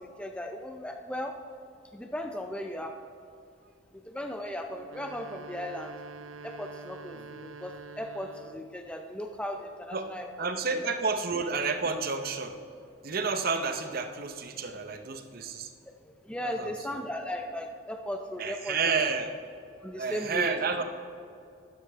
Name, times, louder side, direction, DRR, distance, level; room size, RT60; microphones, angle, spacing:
voice 1, 0.0-1.3 1.9-2.9 3.9-5.9 6.4-10.3 16.2-18.9 19.8-20.5, equal, 5° left, 4 dB, 0.4 m, -37 dB
sound 1, 4.8-8.8, right 4 dB, 75° right, 0.3 m, -46 dB
voice 2, 10.4-12.6 13.0-15.7 16.4-17.0 18.4-19.3 20.0-20.8, right 4 dB, 50° right, 8 dB, 0.7 m, -30 dB
13.0 x 9.7 x 3.3 m, 2.5 s
head